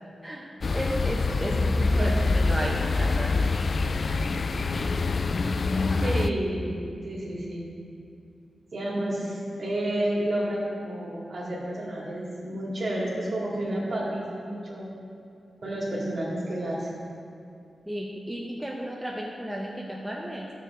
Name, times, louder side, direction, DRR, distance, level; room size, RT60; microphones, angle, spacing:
voice 1, 0.2-3.5 17.9-20.5, equal, 5° right, -3 dB, 0.7 m, -34 dB
sound 1, 0.6-6.3, left 3 dB, 45° left, 0.3 m, -25 dB
voice 2, 6.0-6.7 7.0-7.7 8.7-14.9 15.6-16.9, right 1 dB, 45° right, -4 dB, 2.3 m, -30 dB
14.5 x 6.7 x 3.7 m, 2.5 s
wide cardioid pair, 165°, 0 cm